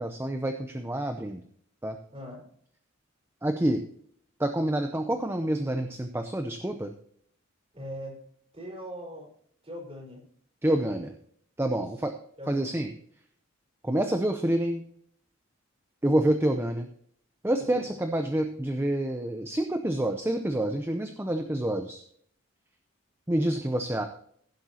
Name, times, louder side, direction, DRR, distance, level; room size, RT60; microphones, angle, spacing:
voice 1, 0.0-1.4 1.8-2.0 3.4-3.8 4.4-6.9 10.6-11.1 11.6-12.2 12.5-12.9 13.8-14.8 16.0-16.9 17.4-22.0 23.3-24.0, right 1 dB, 10° right, 6 dB, 0.6 m, -27 dB
voice 2, 2.1-2.4 7.7-8.2 8.5-9.3 9.6-10.2 10.6-11.0 11.7-11.9 12.4-12.8 17.6-17.8, equal, 30° right, -3 dB, 4.7 m, -41 dB
16.0 x 7.8 x 2.9 m, 0.63 s
head